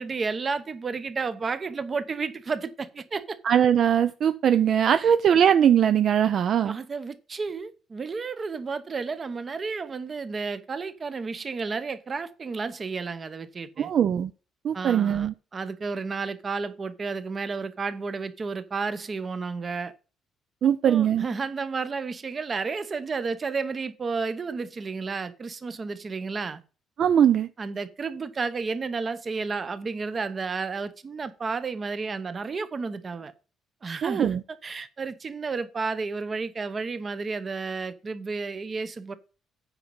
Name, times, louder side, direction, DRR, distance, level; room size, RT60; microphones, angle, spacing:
voice 1, 0.0-3.4 5.0-5.1 6.7-13.9 14.7-19.9 20.8-26.6 27.6-33.3 33.8-34.3 34.6-39.1, right 4 dB, 25° right, 0.8 m, -32 dB
voice 2, 3.4-6.8 13.8-14.3 14.6-15.3 20.6-21.2 27.0-27.5 34.0-34.4, right 9 dB, 45° right, 0.4 m, -21 dB
9.0 x 5.2 x 5.4 m
cardioid pair, 160°, 0 cm